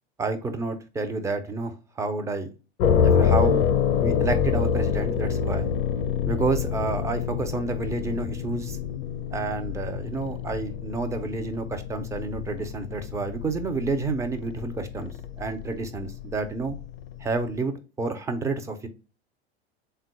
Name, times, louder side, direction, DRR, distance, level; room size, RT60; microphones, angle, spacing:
voice 1, 0.2-2.5 3.0-3.6 4.0-5.7 6.3-8.8 9.3-16.8 17.2-18.9, right 3 dB, 10° right, 7 dB, 0.3 m, -29 dB
sound 1, 2.8-17.6, left 7 dB, 55° left, 0.5 m, -27 dB
3.7 x 2.3 x 4.5 m, 0.33 s
figure-of-eight pair, 85°, 33 cm